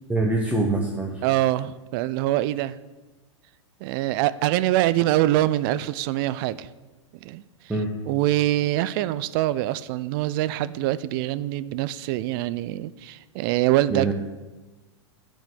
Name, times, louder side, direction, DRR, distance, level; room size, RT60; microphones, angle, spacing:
voice 1, 0.1-1.2 7.7-7.9 13.9-14.1, right 2 dB, 10° right, 0 dB, 1.0 m, -24 dB
voice 2, 1.2-2.8 3.8-6.7 7.2-7.4 8.1-14.1, right 15 dB, 50° right, 16 dB, 0.4 m, -24 dB
9.0 x 5.3 x 7.8 m, 1.2 s
hypercardioid pair, 115°, 15 cm